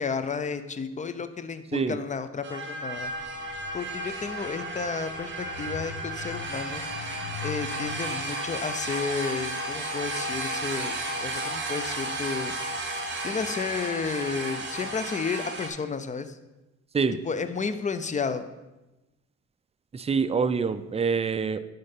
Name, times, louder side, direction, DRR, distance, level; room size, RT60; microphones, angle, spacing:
voice 1, 0.0-3.1 3.7-6.8 7.4-10.9 11.2-12.5 13.2-16.4 17.2-18.4, left 5 dB, 25° left, 11 dB, 0.6 m, -32 dB
sound 1, 2.4-15.7, right 2 dB, 40° right, 1.7 m, -33 dB
sound 2, 3.0-8.0, left 7 dB, 70° left, 1.4 m, -43 dB
voice 2, 19.9-21.6, right 5 dB, 20° right, 11 dB, 0.4 m, -25 dB
9.7 x 3.9 x 5.4 m, 1.0 s
cardioid pair, 90°, 30 cm